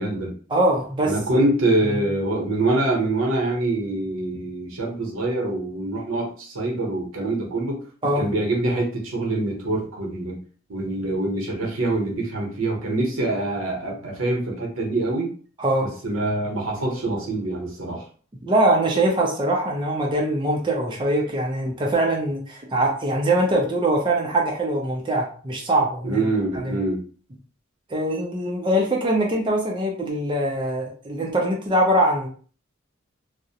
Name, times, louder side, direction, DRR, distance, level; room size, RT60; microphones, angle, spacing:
voice 1, 0.0-0.3 1.0-7.8 8.2-10.4 10.7-15.3 15.8-18.0 26.0-27.0, right 2 dB, 90° right, 0 dB, 0.8 m, -25 dB
voice 2, 0.5-1.4 1.9-2.1 8.0-8.2 15.6-15.9 18.4-26.2 26.6-26.8 27.9-32.3, right 1 dB, 25° right, -1 dB, 0.5 m, -22 dB
2.4 x 2.0 x 2.7 m, 0.42 s
head